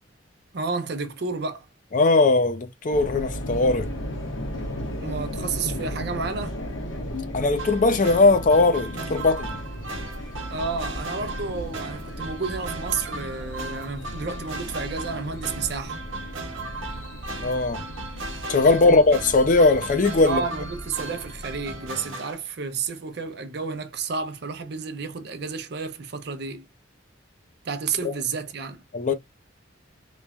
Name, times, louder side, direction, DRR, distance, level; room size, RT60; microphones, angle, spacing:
voice 1, 0.5-1.7 5.0-6.6 10.5-16.0 18.9-19.0 20.2-26.7 27.6-28.8, right 5 dB, 55° right, 0.6 m, -31 dB
voice 2, 1.9-3.9 7.3-9.6 17.4-17.8 18.5-20.4 28.0-28.1 28.9-29.1, left 3 dB, 40° left, 0.4 m, -19 dB
sound 1, 2.9-21.9, equal, 85° left, 1.0 m, -36 dB
sound 2, 7.6-22.3, right 2 dB, 85° right, 0.9 m, -37 dB
3.0 x 2.1 x 2.3 m
head